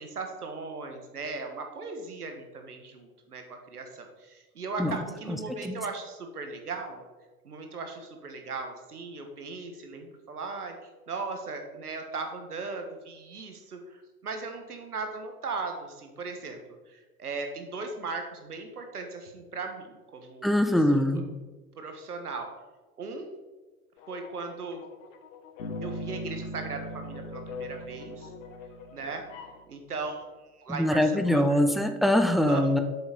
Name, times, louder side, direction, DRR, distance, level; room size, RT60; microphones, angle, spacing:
voice 1, 0.0-7.1 7.4-16.6 16.9-20.6 20.9-21.2 21.7-22.5 23.0-23.3 24.1-24.8 25.8-28.3 28.9-29.2 29.7-31.6 32.5-32.8, right 4 dB, 80° right, 5 dB, 1.6 m, -38 dB
voice 2, 20.4-21.2 30.7-32.8, left 1 dB, ahead, 7 dB, 0.6 m, -23 dB
sound 1, 24.0-29.6, left 5 dB, 60° left, 1.2 m, -45 dB
Bass guitar, 25.6-29.3, right 1 dB, 85° left, 1.6 m, -40 dB
8.3 x 6.9 x 5.1 m, 1.2 s
figure-of-eight pair, 80°, 45 cm